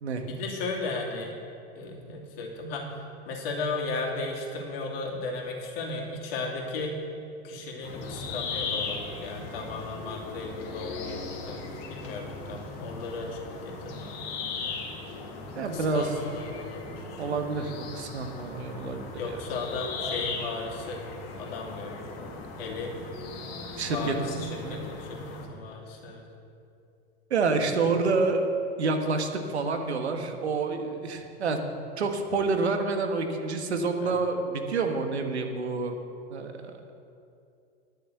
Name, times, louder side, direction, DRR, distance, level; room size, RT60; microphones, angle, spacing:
voice 1, 0.2-1.3 1.7-7.0 7.4-13.4 13.6-14.2 15.6-17.1 19.2-21.0 21.3-22.0 22.6-22.9 23.8-26.2 27.6-27.8 34.0-34.2, left 3 dB, 65° left, 0 dB, 2.7 m, -35 dB
sound 1, 7.8-25.5, left 4 dB, 50° left, 2.2 m, -38 dB
voice 2, 15.5-16.2 17.2-19.0 19.3-19.4 23.8-24.3 24.6-24.8 27.3-28.5 28.8-31.6 32.0-36.0 36.3-36.9, right 4 dB, 90° right, 5 dB, 1.4 m, -28 dB
11.5 x 6.6 x 7.9 m, 2.6 s
hypercardioid pair, 105°, 32 cm